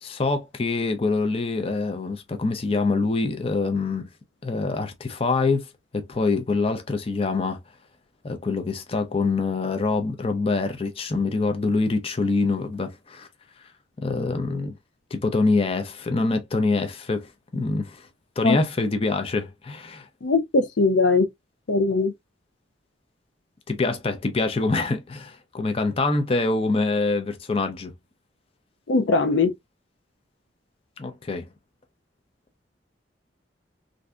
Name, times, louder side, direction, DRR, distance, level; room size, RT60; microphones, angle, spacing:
voice 1, 0.0-4.1 4.4-5.7 5.9-7.6 8.2-13.3 14.0-14.7 15.1-18.1 18.4-20.1 23.7-27.9 31.0-31.5, left 3 dB, 30° left, 0.5 m, -25 dB
voice 2, 20.2-21.3 21.7-22.1 28.9-29.5, left 3 dB, 80° left, 0.5 m, -20 dB
3.3 x 2.6 x 2.3 m
head